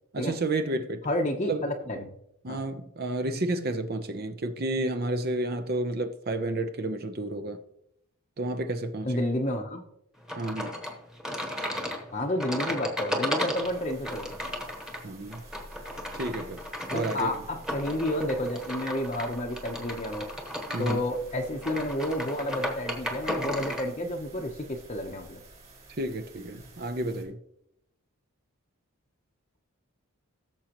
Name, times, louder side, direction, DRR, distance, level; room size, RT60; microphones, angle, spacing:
voice 1, 0.1-1.0 1.5-1.6 2.4-7.6 8.4-9.2 10.4-10.8 15.0-15.4 16.1-16.6 16.9-17.3 20.7-21.0 26.0-27.4, right 2 dB, 45° right, 0.6 m, -31 dB
voice 2, 1.0-2.1 2.5-2.6 9.0-9.8 12.1-14.3 16.9-20.3 20.8-25.4, left 1 dB, 30° left, 0.7 m, -30 dB
sound 1, 10.3-23.9, left 1 dB, 5° right, 1.2 m, -35 dB
sound 2, 13.5-27.2, right 1 dB, 30° right, 2.6 m, -50 dB
16.5 x 7.1 x 3.0 m
head